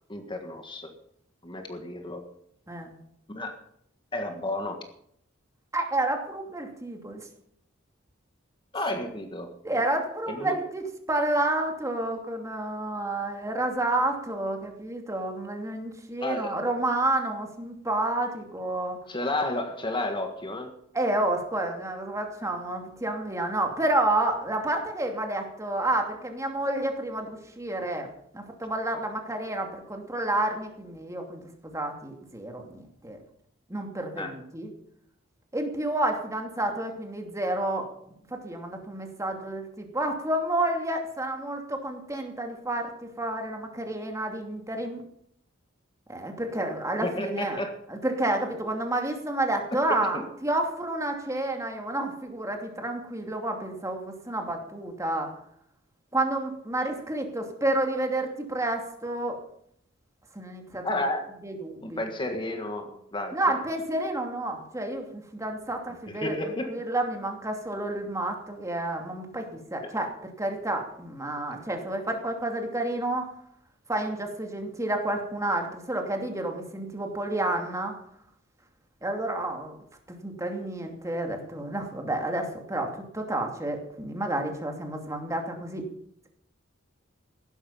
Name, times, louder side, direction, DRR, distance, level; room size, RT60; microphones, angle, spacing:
voice 1, 0.1-0.9 1.4-2.3 3.3-3.6 4.1-4.8 8.7-9.5 10.3-10.5 16.2-16.6 19.1-20.8 34.2-34.3 47.0-47.7 50.1-50.2 60.8-61.3 61.8-63.5 66.1-66.8, left 1 dB, 25° left, 5 dB, 1.6 m, -32 dB
voice 2, 5.7-7.3 9.6-19.0 20.9-28.1 28.3-33.2 33.7-34.7 35.5-37.9 38.3-45.0 46.1-47.6 47.9-55.3 56.1-59.4 60.3-61.0 61.4-62.1 63.3-73.3 73.9-78.0 79.0-79.8 80.2-85.8, right 1 dB, 15° right, 3 dB, 2.7 m, -30 dB
16.0 x 12.0 x 5.6 m, 0.71 s
head